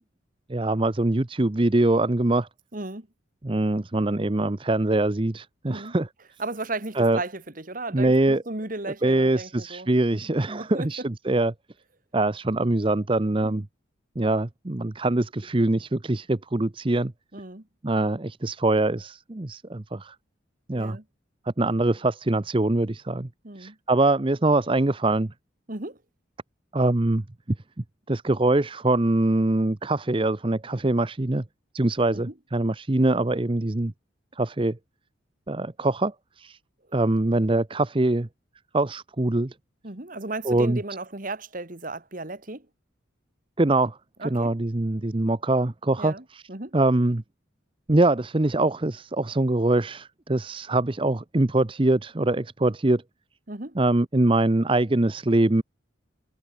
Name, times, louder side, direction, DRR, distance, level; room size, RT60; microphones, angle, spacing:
voice 1, 0.5-2.5 3.4-6.1 7.0-7.2 7.9-8.4 9.0-11.5 12.1-13.7 14.2-17.1 17.8-20.1 20.7-21.0 21.6-23.3 23.6-25.3 26.7-27.2 28.1-31.4 31.7-33.9 34.4-34.8 35.5-36.6 36.9-38.3 38.7-39.5 40.4-40.8 43.6-46.4 46.7-47.2 47.9-53.0 53.8-55.6, right 2 dB, 25° right, 0.7 m, -23 dB
voice 2, 2.7-3.1 5.7-5.9 6.4-9.9 10.5-10.9 13.4-13.6 17.3-17.7 20.7-21.0 23.4-23.8 25.7-26.0 32.1-32.3 39.8-42.7 44.2-44.5 46.0-46.8 53.5-53.8, right 2 dB, 45° right, 2.1 m, -35 dB
head